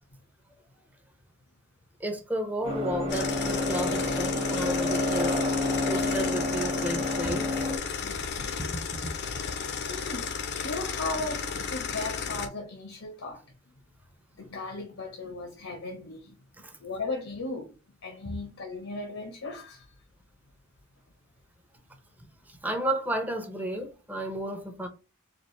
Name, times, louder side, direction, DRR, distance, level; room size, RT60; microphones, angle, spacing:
voice 1, 2.0-5.5 5.9-7.5 16.6-16.8 22.5-24.9, right 1 dB, 10° right, 0.6 m, -32 dB
sound 1, 2.6-7.8, left 2 dB, 30° right, 0.9 m, -29 dB
sound 2, 3.1-12.5, left 6 dB, 55° left, 0.5 m, -34 dB
voice 2, 7.8-8.8 9.8-10.3 10.5-13.4 14.4-16.4 16.8-17.7 18.0-19.9, left 3 dB, 80° left, 0.8 m, -37 dB
4.1 x 2.4 x 3.1 m
head